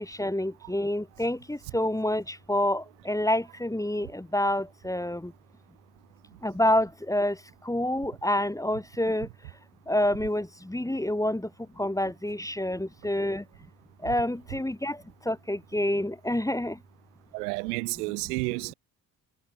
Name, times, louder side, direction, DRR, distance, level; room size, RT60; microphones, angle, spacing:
voice 1, 0.0-2.2 2.5-5.2 6.4-7.4 7.7-9.3 9.9-11.4 11.8-13.4 14.0-15.0 15.3-16.7, left 1 dB, 5° left, 1.6 m, -27 dB
voice 2, 17.3-18.7, right 27 dB, 85° right, 2.2 m, -31 dB
hypercardioid pair, 55°, 45 cm